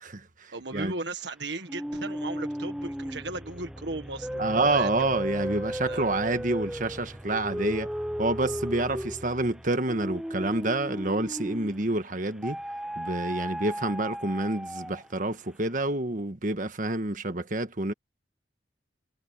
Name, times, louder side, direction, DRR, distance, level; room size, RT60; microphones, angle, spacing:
voice 1, 0.0-0.9 4.4-7.9 8.2-12.6 13.0-17.9, right 2 dB, 45° right, 1.5 m, -28 dB
voice 2, 0.5-5.1 5.8-6.2, right 2 dB, 70° right, 1.6 m, -36 dB
sound 1, 1.7-11.9 12.4-15.2, equal, 5° right, 0.7 m, -35 dB
head